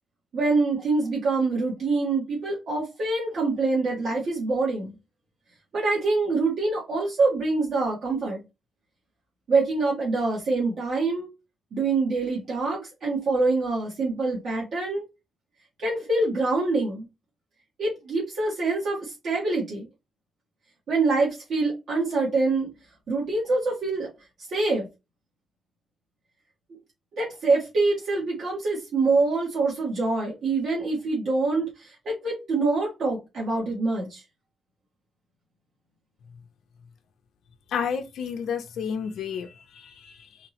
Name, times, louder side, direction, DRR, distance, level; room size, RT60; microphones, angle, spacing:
voice 1, 0.3-4.9 5.7-8.4 9.5-11.3 11.7-15.0 15.8-17.1 17.8-19.9 20.9-22.7 23.1-24.1 24.5-24.9 27.1-34.2, right 3 dB, 65° right, 2.1 m, -25 dB
voice 2, 37.7-39.5 39.8-40.1, left 7 dB, 80° left, 0.6 m, -30 dB
4.3 x 3.0 x 2.9 m
cardioid pair, 130°, 0 cm